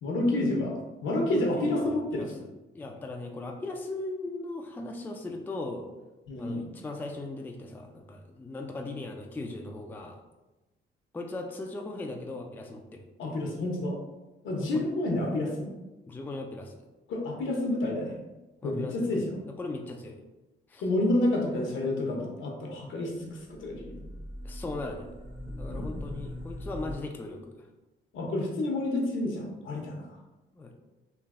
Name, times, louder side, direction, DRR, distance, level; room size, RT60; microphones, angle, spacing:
voice 1, 0.0-2.3 6.3-6.6 13.2-14.0 14.4-15.7 17.1-18.1 18.6-19.3 20.8-24.1 25.7-26.0 28.1-30.1, left 1 dB, 75° left, 0 dB, 0.7 m, -29 dB
voice 2, 1.3-2.5 2.7-5.9 6.4-10.2 11.1-13.4 14.7-14.8 16.1-16.8 18.6-19.1 19.4-20.2 20.7-20.9 24.4-25.1 25.5-27.7 30.5-30.7, left 2 dB, 10° left, 3 dB, 0.3 m, -38 dB
sound 1, 23.5-27.0, left 1 dB, 35° right, 0.7 m, -40 dB
3.2 x 2.5 x 2.4 m, 1.1 s
cardioid pair, 90°, 20 cm